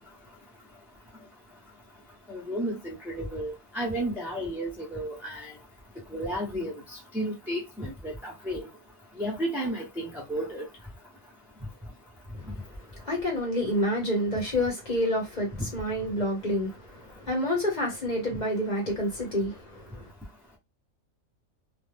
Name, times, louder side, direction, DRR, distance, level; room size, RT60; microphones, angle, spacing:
voice 1, 2.3-5.5 6.1-8.7 9.2-10.7, right 1 dB, ahead, 0.6 m, -33 dB
voice 2, 12.6-20.1, left 1 dB, 35° left, 1.0 m, -29 dB
2.3 x 2.1 x 3.3 m
omnidirectional pair, 1.4 m